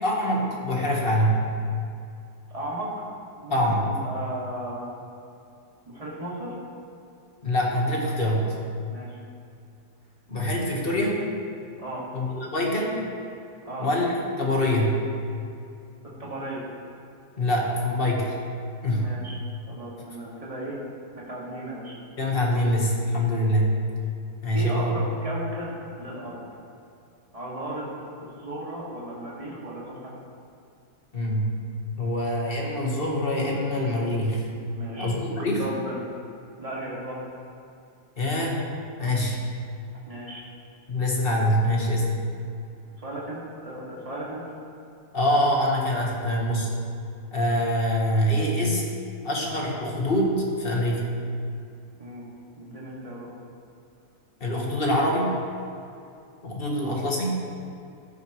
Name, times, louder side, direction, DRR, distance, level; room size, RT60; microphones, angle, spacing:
voice 1, 0.0-1.4 3.5-3.9 7.4-8.5 10.3-11.2 12.1-13.0 13.8-15.0 17.4-18.4 18.8-19.1 22.2-23.7 24.4-24.9 31.1-31.5 32.0-34.5 35.0-35.6 38.2-38.6 39.0-39.4 40.9-42.1 45.1-46.7 47.3-48.8 49.2-51.2 54.4-55.4 56.4-57.4, equal, 35° left, -2 dB, 1.5 m, -24 dB
voice 2, 2.5-2.9 3.4-3.6 3.8-4.9 5.9-6.6 8.9-9.2 11.8-12.0 13.7-13.9 16.0-16.6 19.0-19.4 19.7-20.8 21.1-22.0 24.5-26.4 27.3-30.1 34.7-35.1 35.6-36.0 36.6-37.3 40.1-40.4 43.0-44.4 52.0-52.2 52.6-53.3 56.8-57.0, right 1 dB, 20° right, -6 dB, 2.1 m, -35 dB
13.5 x 9.1 x 3.1 m, 2.5 s
omnidirectional pair, 1.7 m